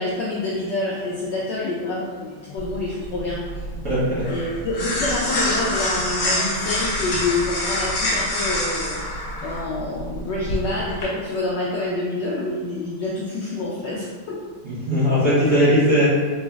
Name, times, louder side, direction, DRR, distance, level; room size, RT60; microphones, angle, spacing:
voice 1, 0.0-3.4 4.3-9.0 9.4-14.4, left 2 dB, 80° left, -5 dB, 1.0 m, -27 dB
sound 1, 2.6-11.0, left 1 dB, 55° left, 1.4 m, -26 dB
voice 2, 3.8-4.3 14.6-16.1, equal, 45° right, -11 dB, 1.1 m, -19 dB
3.9 x 3.1 x 2.3 m, 1.5 s
omnidirectional pair, 2.4 m